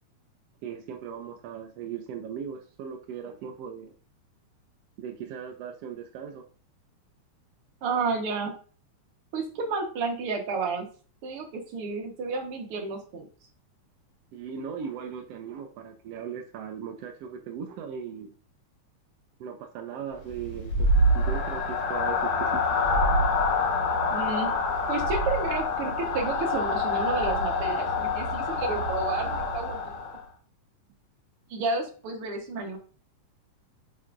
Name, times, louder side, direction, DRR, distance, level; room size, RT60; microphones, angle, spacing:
voice 1, 0.6-3.9 5.0-6.4 14.3-18.3 19.4-20.9 21.1-22.7, right 7 dB, 80° right, 4 dB, 1.4 m, -38 dB
voice 2, 7.8-8.5 9.3-10.9 11.2-13.3 24.1-24.5 24.9-29.9 31.5-32.8, right 4 dB, 55° right, 3 dB, 1.9 m, -31 dB
sound 1, 20.2-30.2, left 2 dB, 90° left, 2.6 m, -26 dB
8.1 x 6.2 x 2.5 m, 0.39 s
omnidirectional pair, 3.5 m